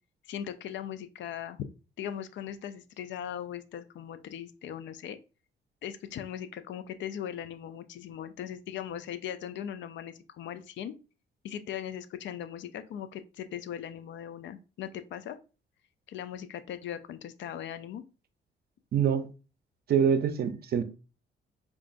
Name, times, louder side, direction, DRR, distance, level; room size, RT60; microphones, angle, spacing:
voice 1, 0.3-1.7 2.0-5.2 5.8-10.9 11.4-15.4 16.1-18.0, left 10 dB, 70° left, 0.4 m, -39 dB
voice 2, 18.9-19.3 19.9-20.8, right 7 dB, 50° right, 0.5 m, -25 dB
4.9 x 2.4 x 2.5 m
cardioid pair, 90°, 20 cm